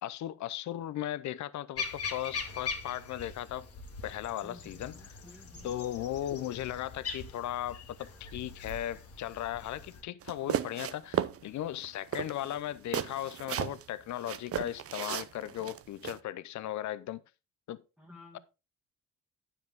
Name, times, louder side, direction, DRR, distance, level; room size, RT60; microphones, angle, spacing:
voice 1, 0.0-3.7 4.0-5.0 5.6-17.2 17.7-17.8, left 12 dB, 70° left, 0.7 m, -37 dB
sound 1, 1.8-10.0, left 5 dB, 50° left, 1.8 m, -42 dB
voice 2, 4.4-5.8 18.0-18.4, left 2 dB, ahead, 1.8 m, -53 dB
sound 2, 10.2-11.4 11.7-11.9 12.1-13.8 14.2-16.2, right 10 dB, 50° right, 0.7 m, -34 dB
9.5 x 7.3 x 3.6 m
cardioid pair, 90°, 30 cm